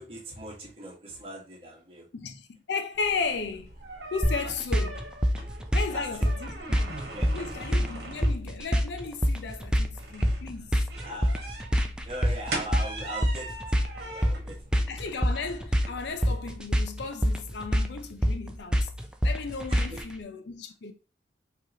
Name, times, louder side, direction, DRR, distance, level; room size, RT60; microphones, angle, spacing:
voice 1, 0.0-2.1 5.5-5.6 5.9-6.1 7.1-7.4 11.0-11.3 12.0-14.6 14.8-15.0 19.7-20.0, equal, 30° right, 1.4 m, -40 dB
voice 2, 2.1-3.7 4.1-5.0 5.7-6.9 7.3-10.7 14.9-18.9 19.2-20.9, left 4 dB, 75° left, 0.5 m, -35 dB
sound 1, 2.9-16.8, right 2 dB, 65° right, 1.2 m, -42 dB
sound 2, 4.2-20.1, equal, 5° right, 0.4 m, -26 dB
4.7 x 3.0 x 2.8 m
head